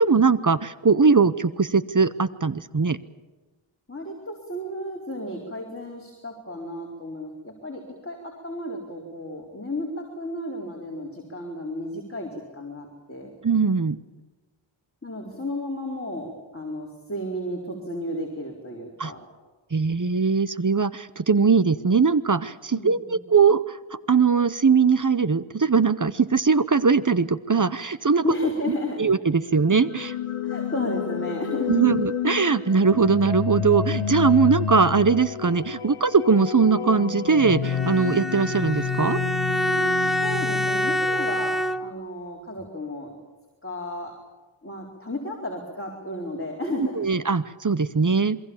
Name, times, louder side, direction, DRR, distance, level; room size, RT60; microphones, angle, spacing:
voice 1, 0.0-3.0 13.4-14.0 19.0-19.1 19.7-23.8 24.1-28.2 29.0-30.1 31.7-39.2 47.0-48.4, right 5 dB, 40° right, 15 dB, 0.8 m, -20 dB
voice 2, 3.9-13.3 15.0-19.2 22.7-23.2 28.2-29.0 30.4-31.8 40.2-43.1 43.6-44.1 44.6-47.1, left 1 dB, 25° left, -1 dB, 4.4 m, -33 dB
sound 1, 29.7-41.6, left 8 dB, 85° left, 0.8 m, -30 dB
Bowed string instrument, 37.6-42.1, equal, ahead, 0.8 m, -26 dB
27.5 x 22.5 x 7.2 m, 1.2 s
wide cardioid pair, 55°, 50 cm